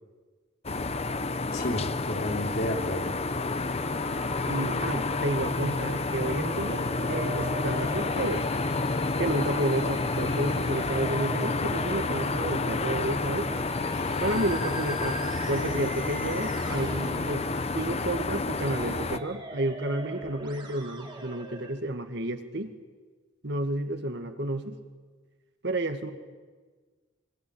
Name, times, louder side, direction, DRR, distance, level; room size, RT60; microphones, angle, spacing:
sound 1, 0.6-19.2, left 3 dB, 35° left, 0.8 m, -29 dB
voice 1, 1.5-3.1, left 1 dB, 55° left, 1 dB, 3.9 m, -31 dB
Musical instrument, 3.8-21.7, right 2 dB, 25° right, 3.6 m, -42 dB
voice 2, 4.4-8.5 9.2-13.5 14.2-17.5 17.7-22.8 23.4-24.8 25.6-26.1, right 1 dB, 65° right, 7 dB, 2.0 m, -31 dB
26.0 x 24.5 x 8.7 m, 1.4 s
head